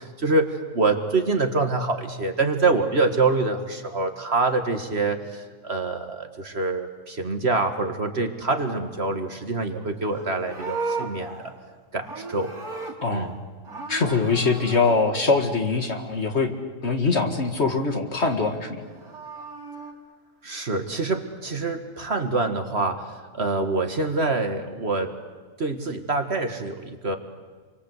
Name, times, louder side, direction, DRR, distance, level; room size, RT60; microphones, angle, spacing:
voice 1, 0.0-11.4 11.9-12.5 13.1-13.3 20.4-25.2 25.6-27.2, right 3 dB, 45° right, 6 dB, 1.9 m, -25 dB
Livestock farm animals working animals, 9.9-13.4 13.6-15.0 18.7-19.9, right 4 dB, 85° right, 3.9 m, -35 dB
voice 2, 13.9-16.5 16.8-18.8, left 4 dB, 45° left, 5 dB, 2.2 m, -23 dB
28.5 x 24.0 x 8.2 m, 1.4 s
omnidirectional pair, 1.6 m